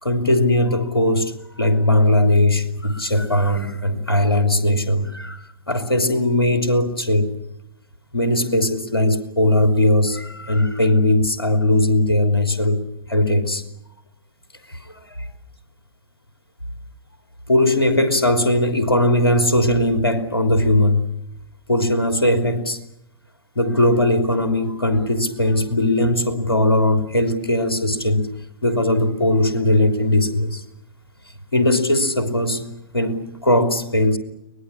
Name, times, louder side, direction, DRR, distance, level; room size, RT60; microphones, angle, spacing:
voice 1, 0.0-7.3 8.1-12.8 13.1-13.6 14.7-15.2 17.5-21.0 21.7-22.8 23.5-28.3 28.6-30.6 31.5-32.6 32.9-34.2, left 1 dB, 80° left, 7 dB, 3.3 m, -19 dB
23.5 x 20.0 x 9.8 m, 0.82 s
figure-of-eight pair, 100°, 13 cm